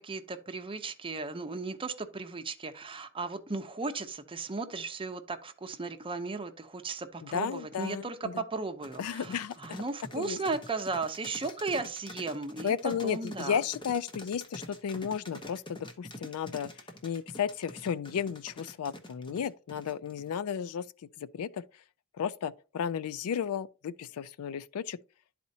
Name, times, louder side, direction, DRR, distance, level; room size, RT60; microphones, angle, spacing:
voice 1, 0.0-12.7 13.0-13.6, right 3 dB, 25° right, 0.7 m, -36 dB
voice 2, 7.2-8.4 9.0-9.8 10.2-10.4 12.6-16.7 17.0-20.9 21.2-21.8 22.1-25.0, left 7 dB, 80° left, 0.4 m, -34 dB
sound 1, 8.8-20.3, left 1 dB, 20° left, 0.9 m, -46 dB
11.5 x 4.2 x 2.7 m
head